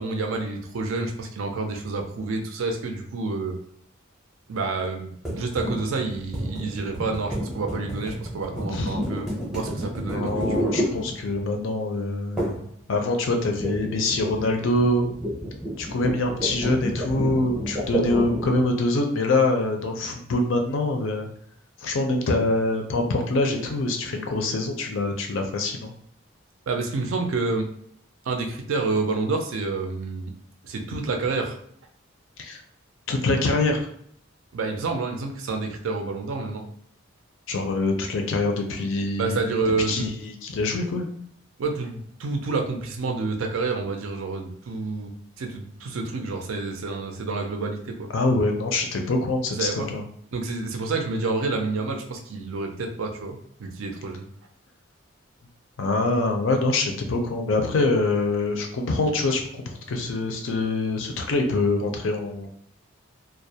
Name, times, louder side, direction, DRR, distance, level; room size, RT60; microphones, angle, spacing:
voice 1, 0.0-3.6 4.5-9.3 9.5-10.6 26.7-27.7 28.3-30.3 30.6-31.6 34.5-36.6 39.2-40.1 41.6-45.1 45.4-48.1 49.6-49.9 50.3-54.2, right 3 dB, 75° right, 3 dB, 0.4 m, -28 dB
sound 1, 5.2-11.6 12.4-12.7 13.0-18.7, equal, 5° right, 0.5 m, -30 dB
voice 2, 8.7-9.0 10.1-12.6 12.9-15.0 15.8-21.3 21.8-25.9 32.4-32.6 33.1-33.9 37.5-39.4 39.9-41.1 48.1-50.0 55.8-62.5, left 2 dB, 65° left, 4 dB, 0.4 m, -24 dB
2.2 x 2.0 x 2.7 m, 0.65 s
head